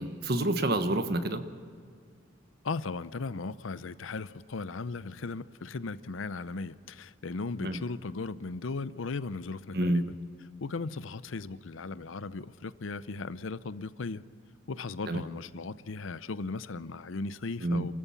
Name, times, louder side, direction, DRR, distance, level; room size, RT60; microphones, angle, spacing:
voice 1, 0.0-1.4 7.6-7.8 9.7-10.0 15.1-15.2 17.6-17.9, right 1 dB, 55° right, 1.3 m, -28 dB
voice 2, 2.6-10.2 10.6-14.2 14.7-17.9, left 3 dB, 85° left, 0.7 m, -37 dB
28.0 x 14.0 x 7.3 m
head